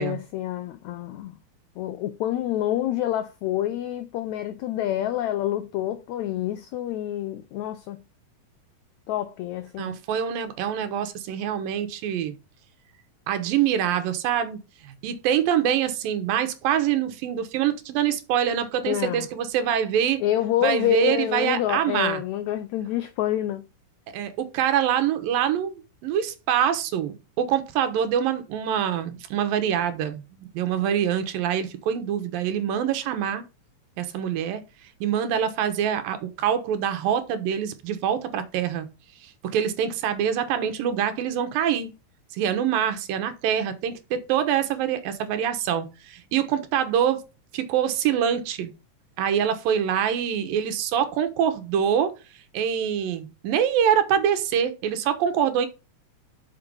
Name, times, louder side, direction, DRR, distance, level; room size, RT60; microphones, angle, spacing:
voice 1, 0.0-1.4 1.8-8.0 9.1-10.0 18.9-19.3 20.2-23.6, left 12 dB, 85° left, 1.6 m, -27 dB
voice 2, 9.8-12.3 13.3-14.6 14.8-20.2 20.6-22.2 24.1-33.4 34.0-34.6 35.0-38.9 39.5-41.9 42.3-47.2 47.5-48.7 49.2-52.1 52.5-55.7, right 9 dB, 85° right, 2.9 m, -25 dB
6.6 x 6.1 x 5.4 m
omnidirectional pair, 4.0 m